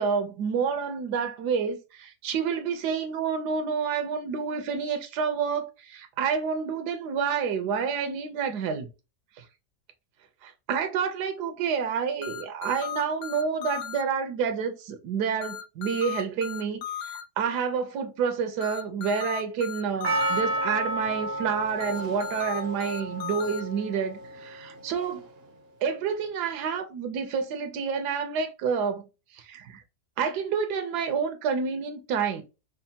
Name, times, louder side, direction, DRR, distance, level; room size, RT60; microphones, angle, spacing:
voice 1, 0.0-8.9 9.4-9.5 10.4-25.2 25.8-29.8 30.2-32.4, right 6 dB, 80° right, 1.2 m, -29 dB
sound 1, 12.2-14.0 15.4-17.2 18.6-20.4 21.8-23.6, left 10 dB, 85° left, 0.5 m, -36 dB
Percussion, 20.0-24.4 25.0-25.1, right 1 dB, 60° right, 0.6 m, -31 dB
5.3 x 2.1 x 2.7 m
omnidirectional pair, 1.7 m